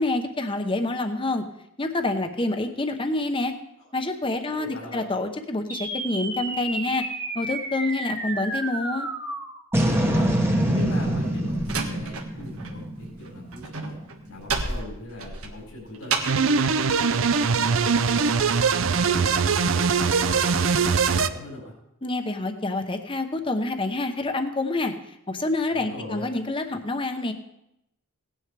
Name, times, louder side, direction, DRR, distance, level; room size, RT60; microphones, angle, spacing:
voice 1, 0.0-1.4 1.8-3.5 3.9-4.7 4.9-7.1 7.3-9.1 22.0-24.9 25.3-27.3, left 2 dB, 25° left, 7 dB, 0.9 m, -27 dB
voice 2, 4.5-5.0 9.8-10.3 10.6-14.0 14.3-16.1 16.6-18.2 18.9-21.7 25.7-26.2, left 1 dB, 90° left, -3 dB, 4.4 m, -40 dB
sound 1, 5.7-14.3, right 1 dB, 10° right, 1.0 m, -27 dB
Slam, 11.0-12.8 13.0-16.5, right 4 dB, 85° right, 1.4 m, -31 dB
sound 2, 16.2-21.3, right 5 dB, 65° right, 0.6 m, -21 dB
17.5 x 10.0 x 3.4 m, 0.82 s
head